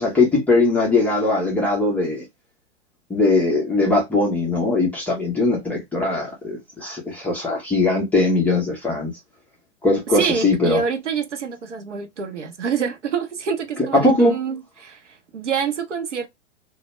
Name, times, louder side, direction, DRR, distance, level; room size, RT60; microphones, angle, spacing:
voice 1, 0.0-2.2 3.1-9.1 9.8-10.8 13.9-14.4, left 2 dB, 5° left, 0.3 m, -20 dB
voice 2, 10.1-16.3, right 6 dB, 85° right, 0.6 m, -26 dB
2.1 x 2.0 x 3.0 m
figure-of-eight pair, 105°, 35 cm